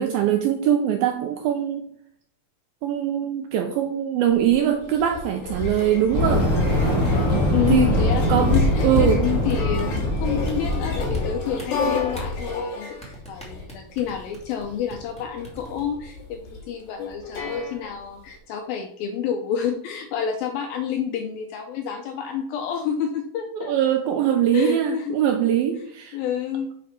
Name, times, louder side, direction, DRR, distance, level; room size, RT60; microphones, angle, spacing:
voice 1, 0.0-1.8 2.8-6.5 7.7-8.0 8.3-9.3 23.5-26.2, right 10 dB, 90° right, 5 dB, 2.1 m, -22 dB
sound 1, 4.3-18.2, left 3 dB, 55° left, 3.6 m, -30 dB
Fire, 6.0-11.3, left 1 dB, 25° left, 2.6 m, -22 dB
voice 2, 7.5-23.7 24.5-25.2 26.1-26.7, left 8 dB, 80° left, 4 dB, 2.1 m, -29 dB
sound 2, 8.1-10.0 10.5-11.2 11.4-12.2 13.0-14.6 14.9-15.2 15.4-15.8, right 2 dB, 5° left, 1.4 m, -40 dB
7.3 x 4.6 x 5.8 m, 0.71 s
omnidirectional pair, 4.9 m